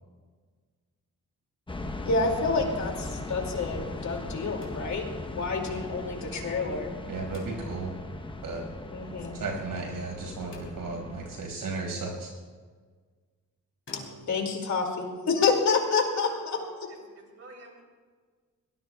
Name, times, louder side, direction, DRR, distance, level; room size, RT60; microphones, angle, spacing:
Very Long Rainy Woosh Fx, 1.7-11.4, left 2 dB, 15° left, 0.9 m, -38 dB
voice 1, 2.0-6.9 8.9-9.4 13.9-14.0 14.3-16.9, left 4 dB, 55° left, 2 dB, 2.5 m, -28 dB
sound 1, 4.6-5.4 7.3-8.1 10.5-11.4 13.9-14.2, left 1 dB, 35° left, 3.6 m, -49 dB
voice 2, 7.1-7.9 8.4-8.6 9.3-12.3, right 3 dB, 80° right, 1 dB, 5.6 m, -34 dB
voice 3, 16.2-16.8 17.2-17.8, right 3 dB, 45° right, 0 dB, 3.5 m, -48 dB
23.0 x 19.0 x 2.3 m, 1.5 s
wide cardioid pair, 160°, 34 cm